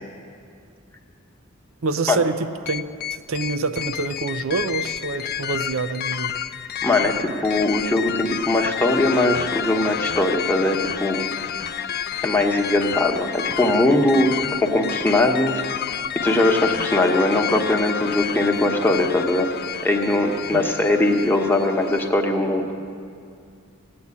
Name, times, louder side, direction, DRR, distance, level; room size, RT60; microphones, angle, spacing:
voice 1, 1.8-2.8 3.1-6.3 20.5-20.9, right 4 dB, 65° right, 12 dB, 0.6 m, -26 dB
sound 1, 2.7-22.1, left 9 dB, 45° left, 0.5 m, -29 dB
voice 2, 6.8-11.3 12.2-15.6 16.2-19.5 19.8-22.7, left 1 dB, 10° left, 2 dB, 1.1 m, -20 dB
17.5 x 8.7 x 9.6 m, 2.3 s
head